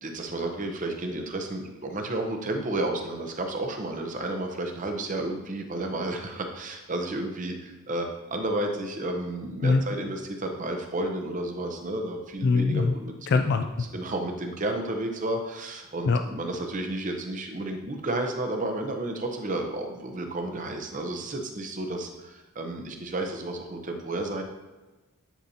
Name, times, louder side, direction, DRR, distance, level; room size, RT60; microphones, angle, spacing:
voice 1, 0.0-13.4 13.9-24.4, right 2 dB, 35° right, 4 dB, 0.7 m, -32 dB
voice 2, 12.4-12.9 13.3-13.9 16.1-16.2, left 4 dB, 50° left, 7 dB, 0.3 m, -22 dB
9.9 x 4.1 x 2.8 m, 1.2 s
head